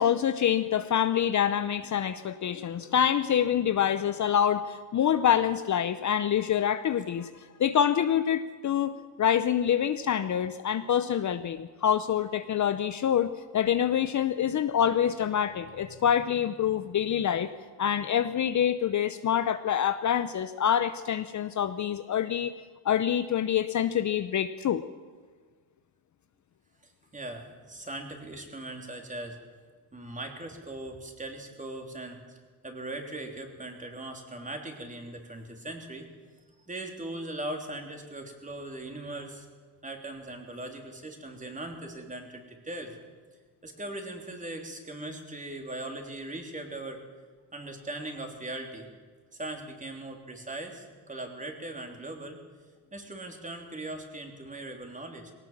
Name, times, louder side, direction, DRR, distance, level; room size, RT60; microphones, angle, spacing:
voice 1, 0.0-17.5 17.8-22.5 22.8-24.8, left 9 dB, 40° left, 11 dB, 0.8 m, -26 dB
voice 2, 26.8-29.4 29.9-32.2 32.6-36.1 36.7-39.5 39.8-42.9 43.6-47.0 47.5-48.9 49.3-52.4 52.9-55.3, right 2 dB, 15° right, 3 dB, 3.3 m, -39 dB
20.0 x 18.0 x 7.3 m, 1.5 s
cardioid pair, 115°, 43 cm